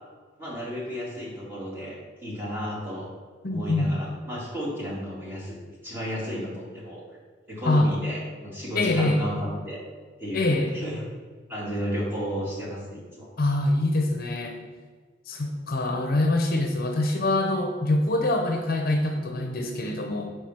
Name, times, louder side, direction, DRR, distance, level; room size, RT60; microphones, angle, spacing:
voice 1, 0.4-3.1 3.5-5.6 5.8-7.2 7.5-9.8 10.2-11.0 11.5-13.3, equal, 10° right, -6 dB, 1.9 m, -33 dB
voice 2, 3.4-3.9 7.6-7.9 8.7-9.2 10.3-10.7 13.4-14.6 15.3-20.3, left 2 dB, 50° left, 3 dB, 0.7 m, -24 dB
4.8 x 4.6 x 5.8 m, 1.5 s
head